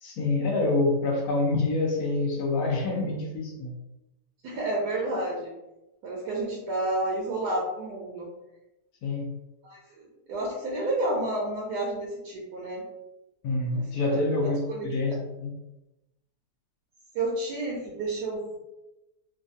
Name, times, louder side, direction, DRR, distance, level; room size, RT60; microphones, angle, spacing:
voice 1, 0.0-3.7 9.0-9.4 13.4-15.5, left 2 dB, 70° left, -1 dB, 1.1 m, -27 dB
voice 2, 4.4-5.5 6.0-8.3 9.6-12.8 13.7-15.2 17.1-18.6, right 2 dB, 80° right, -3 dB, 1.2 m, -31 dB
3.3 x 2.3 x 2.6 m, 0.96 s
omnidirectional pair, 1.7 m